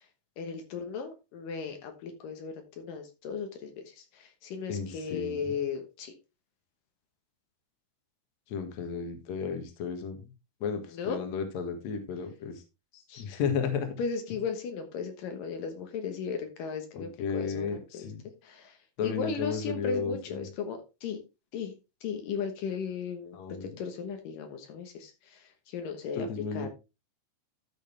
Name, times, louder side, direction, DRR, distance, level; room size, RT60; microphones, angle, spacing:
voice 1, 0.4-3.7 4.1-6.1 10.9-11.2 13.1-13.2 14.0-17.7 17.9-18.1 18.4-18.7 19.0-21.2 21.5-21.7 22.0-25.4 25.7-26.3 26.5-26.7, left 6 dB, 75° left, 6 dB, 2.9 m, -36 dB
voice 2, 4.7-5.6 8.5-10.3 10.6-12.6 13.2-13.9 16.9-18.2 19.0-20.5 23.3-23.7 26.1-26.7, left 6 dB, 60° left, 6 dB, 2.6 m, -33 dB
12.5 x 6.5 x 3.3 m, 0.26 s
omnidirectional pair, 4.0 m